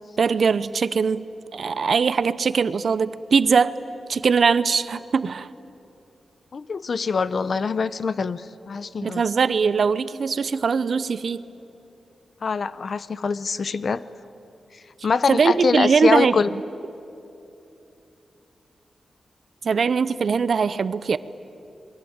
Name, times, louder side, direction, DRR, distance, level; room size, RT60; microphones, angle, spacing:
voice 1, 0.2-1.3 1.5-3.7 4.1-5.5 9.0-11.4 15.3-16.4 19.6-21.2, right 5 dB, 60° right, 15 dB, 0.7 m, -21 dB
voice 2, 6.5-9.2 12.4-14.0 15.0-16.5, left 5 dB, 55° left, 16 dB, 0.7 m, -24 dB
27.5 x 22.0 x 8.8 m, 2.8 s
wide cardioid pair, 125°, 0 cm